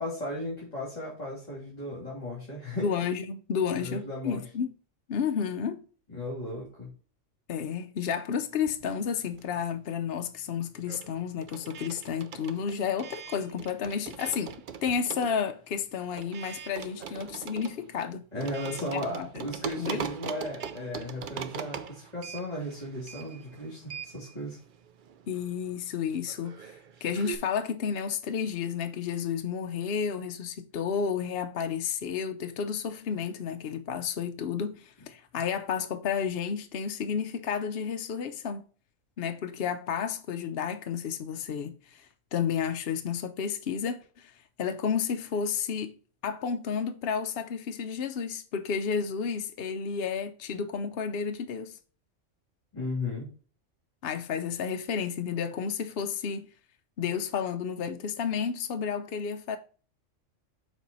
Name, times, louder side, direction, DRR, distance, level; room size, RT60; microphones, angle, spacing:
voice 1, 0.0-2.9 3.8-4.4 6.1-6.9 18.3-24.6 52.7-53.3, left 1 dB, 30° left, 2.9 m, -35 dB
voice 2, 2.8-4.7 5.1-5.8 7.5-18.2 18.9-19.5 19.8-20.0 25.3-38.6 39.2-42.1 42.3-44.3 44.6-45.9 46.2-51.8 54.0-56.5 57.0-59.6, left 7 dB, 60° left, 0.8 m, -31 dB
sound 1, 8.5-9.8 10.0-27.4, right 8 dB, 55° right, 0.6 m, -42 dB
7.2 x 4.5 x 4.0 m
omnidirectional pair, 1.3 m